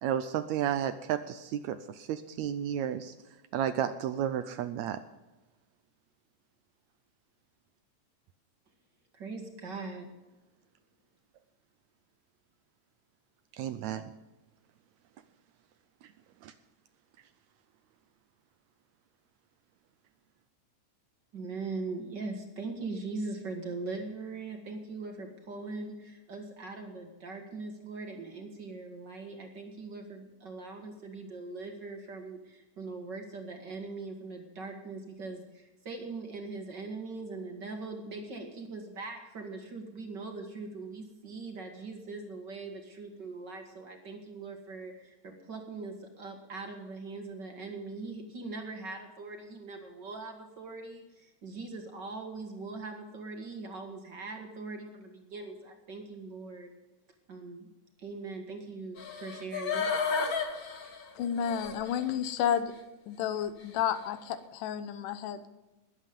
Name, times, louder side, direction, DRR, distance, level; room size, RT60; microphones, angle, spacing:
voice 1, 0.0-3.1 3.5-5.0 13.5-14.1 16.4-16.5, right 10 dB, 75° right, 11 dB, 1.7 m, -32 dB
voice 2, 9.1-10.1 21.3-56.7 57.3-57.7 58.0-59.9, right 3 dB, 40° right, 3 dB, 1.9 m, -41 dB
sound 1, 59.0-62.0 62.5-62.6, left 5 dB, 50° left, 1.1 m, -33 dB
voice 3, 61.2-62.7 63.1-65.5, left 9 dB, 90° left, 11 dB, 2.5 m, -31 dB
20.5 x 8.3 x 5.3 m, 1.1 s
omnidirectional pair, 3.6 m